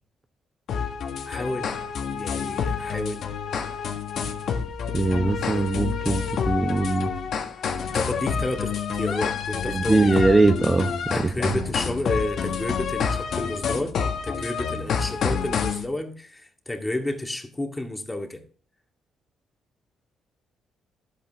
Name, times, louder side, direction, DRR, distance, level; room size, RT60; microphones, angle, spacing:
sound 1, 0.7-15.8, left 6 dB, 65° left, 1.6 m, -28 dB
voice 1, 1.3-1.7 2.1-3.2 7.9-10.2 11.1-18.4, left 1 dB, 15° left, 2.1 m, -31 dB
voice 2, 4.9-7.1 9.7-11.5, right 3 dB, 20° right, 0.9 m, -22 dB
12.0 x 8.5 x 3.6 m
cardioid pair, 90°, 0 cm